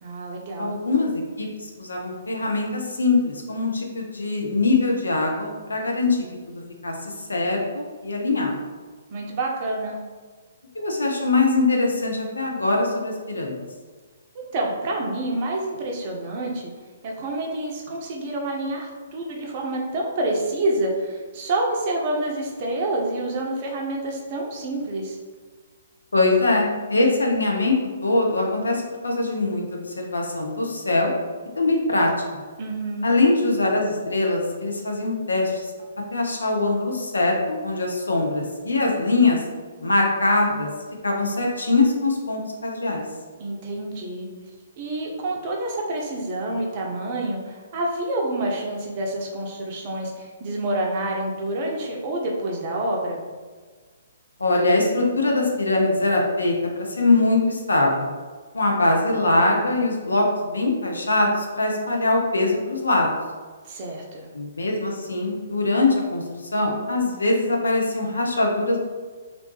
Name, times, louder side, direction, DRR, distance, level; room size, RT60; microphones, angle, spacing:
voice 1, 0.0-0.8 9.1-10.0 14.3-16.7 17.0-25.2 32.6-33.1 43.4-44.3 44.8-53.2 63.6-64.3, right 1 dB, 35° right, -1 dB, 0.6 m, -28 dB
voice 2, 0.6-1.5 1.8-6.2 6.5-8.6 10.7-13.6 26.1-27.8 28.0-31.1 31.6-32.4 33.0-35.7 36.1-39.4 39.8-40.7 41.0-43.0 54.4-58.1 58.5-63.1 64.3-66.2 66.5-68.8, left 2 dB, 70° left, 0 dB, 0.6 m, -22 dB
3.2 x 2.6 x 3.2 m, 1.4 s
figure-of-eight pair, 125°, 0 cm